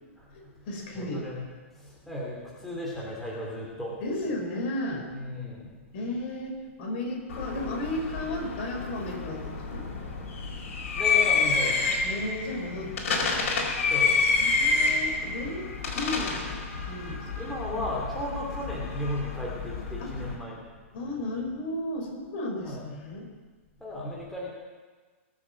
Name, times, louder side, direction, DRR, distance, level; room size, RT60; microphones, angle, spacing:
voice 1, 0.3-1.3 4.0-5.1 5.9-9.9 12.0-13.4 14.4-17.5 20.0-20.1 20.9-23.3, left 1 dB, 45° left, 1 dB, 4.4 m, -34 dB
voice 2, 0.9-1.4 1.7-4.0 5.1-5.7 10.6-12.0 13.9-14.6 17.3-20.6 22.6-22.9 23.8-24.5, left 1 dB, ahead, -5 dB, 3.0 m, -35 dB
sound 1, 7.3-20.3, left 4 dB, 70° left, 4.7 m, -29 dB
21.0 x 7.6 x 7.7 m, 1.4 s
hypercardioid pair, 160°, 7 cm